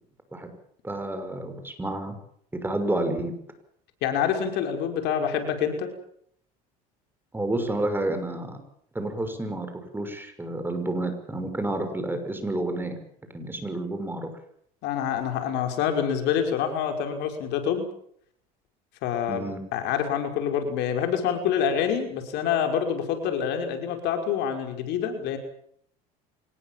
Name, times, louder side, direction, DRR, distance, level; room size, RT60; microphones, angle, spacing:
voice 1, 0.8-2.2 2.6-3.3 7.3-8.6 8.9-9.7 9.9-13.0 13.3-14.3 19.3-19.6, right 1 dB, 10° right, 7 dB, 6.3 m, -29 dB
voice 2, 4.0-5.9 14.8-17.9 19.0-19.5 19.7-25.4, left 8 dB, 70° left, 5 dB, 5.6 m, -26 dB
25.5 x 20.5 x 7.6 m, 0.67 s
supercardioid pair, 100°, 18 cm